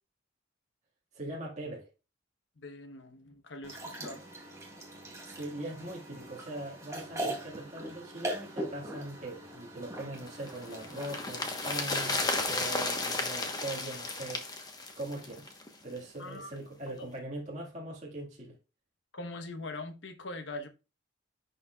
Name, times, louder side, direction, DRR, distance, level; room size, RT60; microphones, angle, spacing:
voice 1, 1.1-1.9 5.2-12.2 12.5-14.5 15.0-15.5 15.8-18.6, right 1 dB, 35° right, 1.9 m, -41 dB
voice 2, 2.6-4.2 16.2-16.6 16.9-17.1 19.1-20.7, left 2 dB, 60° left, 1.0 m, -42 dB
sound 1, 3.6-12.4, right 1 dB, 15° right, 1.7 m, -41 dB
sound 2, 10.3-15.7 16.0-16.1, left 2 dB, 20° left, 1.1 m, -33 dB
11.0 x 4.3 x 2.3 m
head